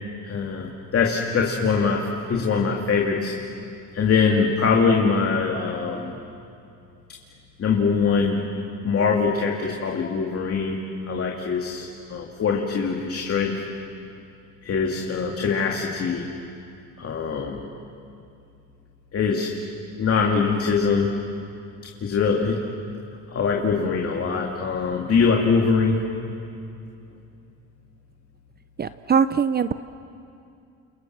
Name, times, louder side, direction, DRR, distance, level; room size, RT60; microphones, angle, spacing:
voice 1, 0.2-3.3 3.9-6.2 7.6-8.5 8.8-13.6 14.6-16.3 17.0-17.6 19.1-19.5 20.0-21.1 22.0-22.6 23.3-26.0, left 5 dB, 45° left, 0 dB, 2.5 m, -23 dB
voice 2, 28.8-29.7, right 6 dB, 30° right, 13 dB, 0.6 m, -21 dB
29.0 x 29.0 x 6.2 m, 2.6 s
cardioid pair, 100°, 31 cm